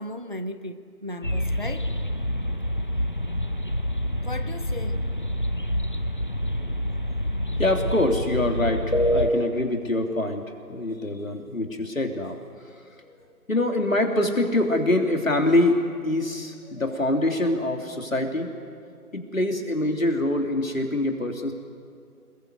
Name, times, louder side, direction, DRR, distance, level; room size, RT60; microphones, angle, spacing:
voice 1, 0.0-1.9 4.2-5.0 5.5-5.7, left 1 dB, 35° right, 11 dB, 0.7 m, -36 dB
sound 1, 1.2-9.3, equal, 35° left, 0.9 m, -27 dB
voice 2, 7.6-12.4 13.0-13.2 13.5-18.5 19.1-21.5, left 1 dB, 60° left, 3 dB, 3.3 m, -25 dB
29.0 x 21.5 x 8.1 m, 2.2 s
figure-of-eight pair, 160°, 46 cm